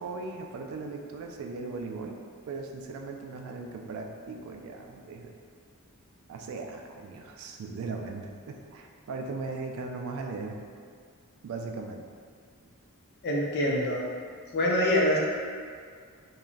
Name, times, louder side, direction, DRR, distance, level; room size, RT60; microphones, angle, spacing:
voice 1, 0.0-2.1 2.5-5.3 6.3-10.6 11.4-12.0, right 3 dB, 65° right, 2 dB, 0.3 m, -38 dB
voice 2, 13.2-14.0 14.5-15.2, left 1 dB, 50° left, -3 dB, 0.5 m, -25 dB
2.9 x 2.3 x 2.5 m, 2.1 s
head